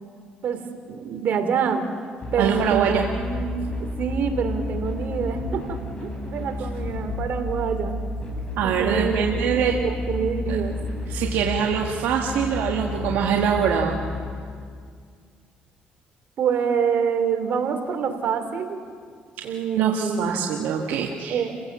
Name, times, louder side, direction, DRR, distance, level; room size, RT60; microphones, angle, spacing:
voice 1, 0.9-1.9 2.3-3.7 4.0-8.0 8.6-10.8 16.4-18.8 19.4-20.5 21.3-21.6, right 6 dB, 60° right, 6 dB, 2.8 m, -26 dB
sound 1, 2.2-14.2, left 2 dB, 30° left, 6.6 m, -31 dB
voice 2, 2.4-3.1 8.6-9.7 10.5-10.6 11.1-14.0 19.4-21.4, right 7 dB, 80° right, 1 dB, 1.6 m, -24 dB
29.5 x 16.5 x 7.4 m, 2.1 s
cardioid pair, 85°, 3 cm